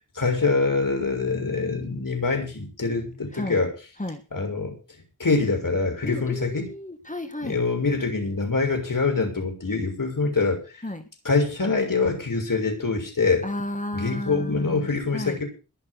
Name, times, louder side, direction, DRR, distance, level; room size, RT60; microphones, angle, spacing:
voice 1, 0.1-3.8 4.3-4.8 5.2-6.7 7.4-10.8 11.2-13.5 13.9-15.4, left 4 dB, 80° left, 3 dB, 6.6 m, -24 dB
voice 2, 6.0-7.6 10.8-11.0 13.4-14.9 15.1-15.4, left 1 dB, 25° left, 7 dB, 1.8 m, -32 dB
21.5 x 7.4 x 6.4 m, 0.34 s
wide cardioid pair, 70°, 32 cm